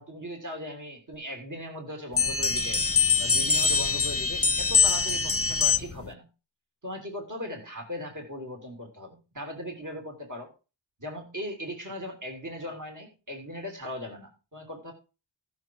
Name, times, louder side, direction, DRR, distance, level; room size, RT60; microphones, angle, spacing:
voice 1, 0.0-2.8 3.2-6.3 6.8-10.5 11.0-14.9, left 1 dB, 40° right, 1 dB, 3.1 m, -38 dB
sound 1, 2.2-6.1, left 5 dB, 30° left, 0.7 m, -24 dB
14.5 x 6.6 x 4.6 m, 0.33 s
wide cardioid pair, 50°, 46 cm